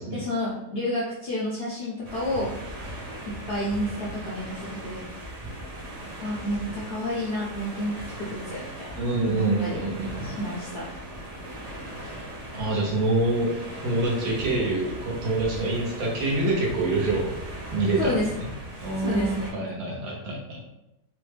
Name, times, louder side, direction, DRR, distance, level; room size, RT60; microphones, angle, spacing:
voice 1, 0.1-2.5 3.3-5.0 6.2-9.9 10.2-10.9 11.9-12.2 18.0-18.2 19.0-19.7, left 1 dB, 65° left, -6 dB, 0.6 m, -30 dB
Waves and Wind, 2.0-19.5, right 1 dB, 45° right, 0.5 m, -38 dB
voice 2, 9.0-10.3 12.5-13.5 13.8-17.2 17.7-18.5 18.8-20.6, right 2 dB, 75° right, -2 dB, 1.2 m, -26 dB
3.1 x 2.1 x 3.2 m, 0.89 s
omnidirectional pair, 1.6 m